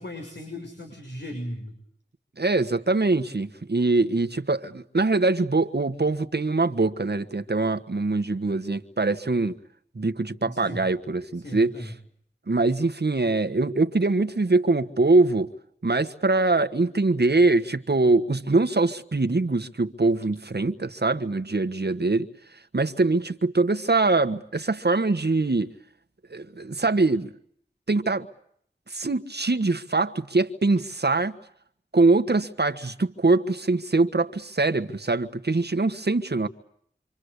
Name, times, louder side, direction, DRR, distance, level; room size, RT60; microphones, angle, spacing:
voice 1, 0.0-1.7 10.4-10.8 11.4-11.9, equal, 75° left, 6.7 m, -36 dB
voice 2, 2.4-9.6 9.9-11.7 12.5-15.5 15.8-22.3 22.7-25.7 26.3-27.3 27.9-28.3 28.9-31.4 31.9-36.5, right 3 dB, 65° right, 1.5 m, -23 dB
27.5 x 26.0 x 8.2 m
wide cardioid pair, 50°, 18 cm